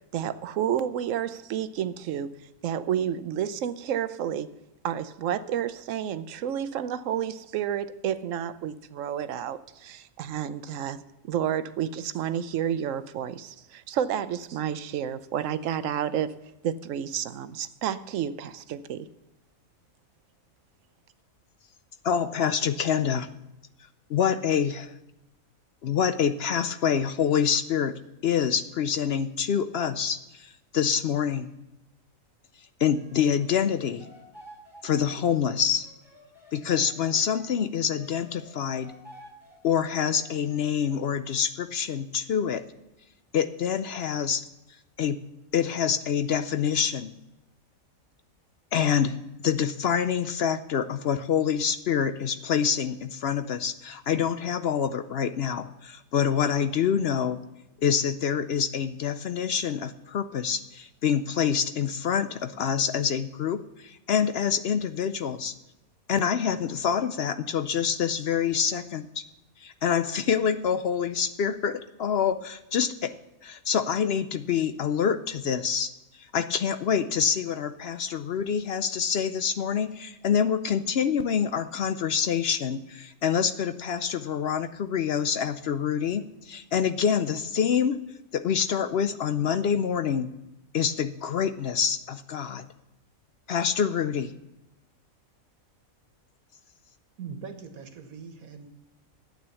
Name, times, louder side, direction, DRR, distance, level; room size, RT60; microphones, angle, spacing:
voice 1, 0.1-2.3 2.6-4.5 4.8-11.0 11.2-16.3 16.6-19.1, right 9 dB, 70° right, 13 dB, 1.0 m, -30 dB
voice 2, 22.0-23.3 24.1-24.9 25.8-27.9 28.2-31.5 32.8-34.1 34.8-35.9 36.5-38.9 39.6-42.6 43.3-44.4 45.0-45.2 45.5-47.1 48.7-57.4 57.8-65.5 66.1-69.1 69.6-73.1 73.4-75.9 76.2-88.0 88.3-90.3 90.7-92.7 93.5-94.3, left 7 dB, 60° left, 11 dB, 0.7 m, -26 dB
sound 1, 32.9-37.5 37.9-41.1, equal, 20° left, 5.4 m, -51 dB
voice 3, 97.2-98.7, right 6 dB, 90° right, 6 dB, 1.8 m, -41 dB
12.0 x 8.9 x 6.9 m, 0.93 s
omnidirectional pair, 1.4 m